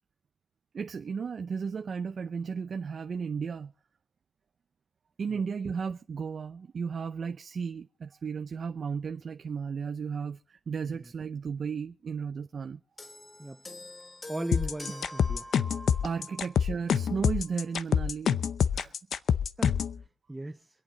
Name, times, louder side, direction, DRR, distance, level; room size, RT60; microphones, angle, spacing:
voice 1, 0.7-3.7 5.2-12.8 16.0-18.4 18.7-18.9, right 6 dB, 55° right, 0.7 m, -34 dB
sound 1, 13.0-16.6 17.5-17.6, left 1 dB, 35° left, 3.3 m, -46 dB
voice 2, 14.3-15.4 19.6-19.8 20.3-20.7, right 1 dB, 15° right, 0.6 m, -36 dB
sound 2, 14.5-20.0, left 7 dB, 70° left, 0.7 m, -26 dB
25.5 x 8.7 x 4.0 m
cardioid pair, 90°, 0 cm